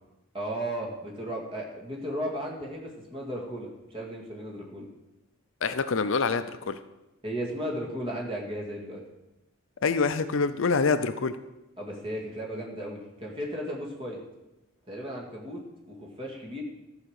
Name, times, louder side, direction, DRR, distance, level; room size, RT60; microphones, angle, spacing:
voice 1, 0.3-4.9 7.2-9.0 11.8-14.2 14.9-15.6 15.9-16.6, equal, 25° right, -2 dB, 2.0 m, -35 dB
voice 2, 5.6-6.8 9.8-11.3, left 4 dB, 65° left, 11 dB, 0.5 m, -26 dB
13.5 x 5.0 x 6.5 m, 0.97 s
head